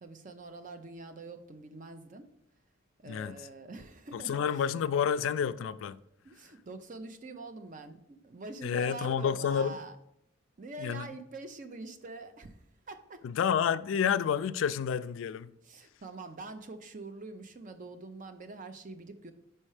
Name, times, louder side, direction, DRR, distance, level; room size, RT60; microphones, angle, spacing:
voice 1, 0.0-2.3 3.0-4.7 6.2-10.0 10.6-13.3 15.6-19.3, right 3 dB, 40° right, 0.5 m, -45 dB
voice 2, 3.1-3.4 4.1-6.0 8.6-9.8 10.8-11.1 13.2-15.5, left 7 dB, 70° left, 0.3 m, -29 dB
5.5 x 4.3 x 4.8 m
head